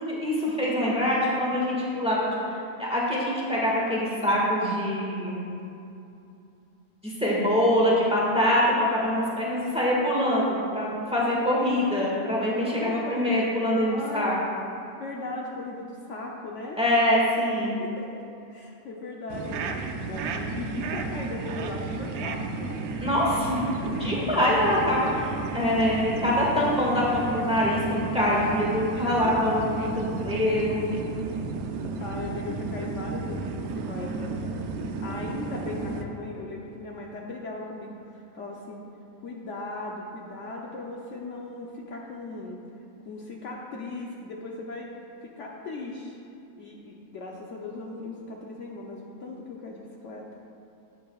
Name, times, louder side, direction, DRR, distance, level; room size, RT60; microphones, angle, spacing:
voice 1, 0.0-2.3 2.8-5.5 7.0-14.4 16.8-17.8 23.0-30.8, left 1 dB, 5° right, -6 dB, 1.6 m, -24 dB
voice 2, 12.7-13.2 13.9-14.2 15.0-16.8 17.8-18.2 18.5-22.8 26.1-26.3 29.2-29.3 30.2-30.3 31.7-34.4 35.0-38.8 39.2-42.6 43.0-44.9 45.2-46.2 46.6-50.2, left 2 dB, 60° left, -2 dB, 1.0 m, -38 dB
sound 1, 19.3-36.0, right 4 dB, 85° right, 1.1 m, -33 dB
12.5 x 8.4 x 2.3 m, 2.7 s
omnidirectional pair, 1.5 m